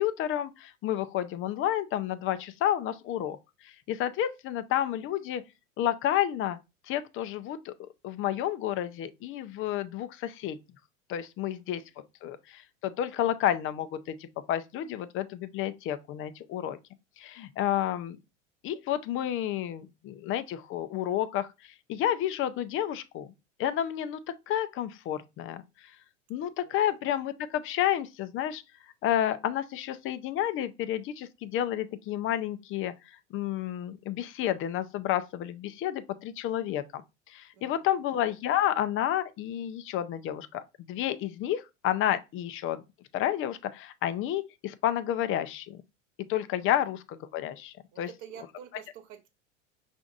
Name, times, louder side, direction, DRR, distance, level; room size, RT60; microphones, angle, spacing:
voice 1, 0.0-5.4 5.8-6.6 6.9-7.7 8.0-10.6 11.1-11.8 12.2-16.8 17.2-18.2 18.6-23.3 23.6-24.2 24.5-25.9 26.3-28.6 29.0-37.0 37.3-42.8 43.1-45.8 46.3-48.1, left 11 dB, 35° left, 0.5 m, -30 dB
voice 2, 26.6-27.0 37.5-37.9 47.9-49.3, right 9 dB, 50° right, 1.1 m, -48 dB
5.7 x 2.6 x 2.5 m
hypercardioid pair, 95°, 37 cm